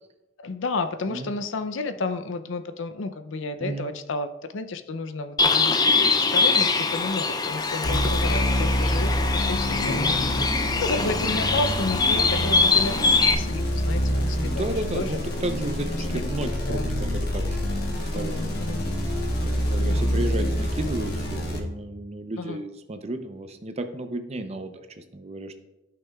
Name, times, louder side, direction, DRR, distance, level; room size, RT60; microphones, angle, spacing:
voice 1, 0.4-5.8 6.1-10.4 10.8-13.0 13.4-15.2 16.1-16.9 18.1-18.9 19.8-20.1 22.4-22.6, left 3 dB, 75° left, 10 dB, 0.5 m, -32 dB
voice 2, 3.6-3.9 7.9-8.1 9.8-10.5 14.4-17.8 18.1-18.6 19.4-25.5, right 1 dB, 35° right, 7 dB, 0.6 m, -33 dB
Bird, 5.4-13.3, left 4 dB, 20° left, 0.5 m, -23 dB
sound 1, 7.8-21.6, equal, 55° left, 1.3 m, -27 dB
13.5 x 5.9 x 2.4 m, 0.99 s
head